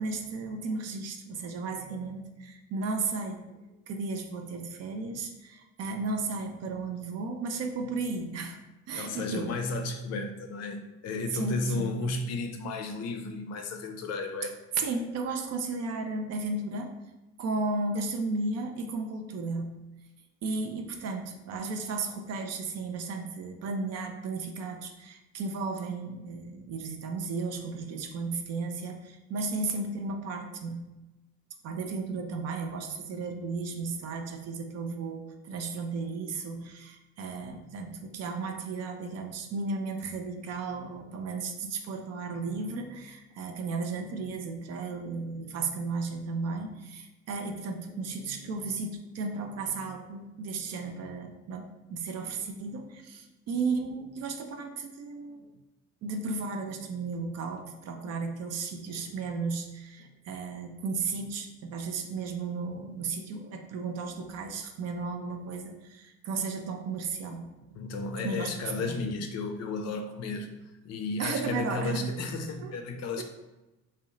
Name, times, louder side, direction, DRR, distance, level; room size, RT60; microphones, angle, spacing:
voice 1, 0.0-3.6 3.9-8.6 8.9-9.5 11.3-11.9 14.8-16.9 17.4-19.8 20.4-30.9 31.6-55.5 56.0-68.5 68.9-69.0 71.2-72.1 72.6-72.7 73.2-73.3, right 3 dB, 40° right, 5 dB, 0.5 m, -34 dB
voice 2, 8.9-14.5 67.7-73.2, left 3 dB, 40° left, 5 dB, 0.5 m, -33 dB
2.6 x 2.1 x 3.7 m, 1.0 s
figure-of-eight pair, 50°, 40 cm